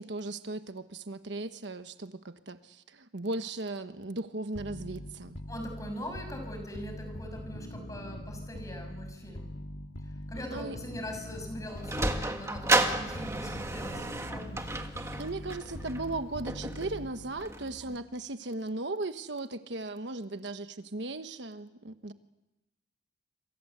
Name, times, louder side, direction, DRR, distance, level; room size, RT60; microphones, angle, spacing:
voice 1, 0.0-5.4 10.5-10.8 15.2-22.1, right 2 dB, 75° right, 9 dB, 1.2 m, -37 dB
sound 1, 4.5-17.5, equal, 80° left, 1.9 m, -42 dB
voice 2, 5.5-9.5 10.0-15.2, equal, 20° left, 4 dB, 6.2 m, -42 dB
Sliding door, 11.4-18.0, right 2 dB, 15° right, 1.6 m, -33 dB
27.0 x 26.0 x 8.1 m, 0.97 s
head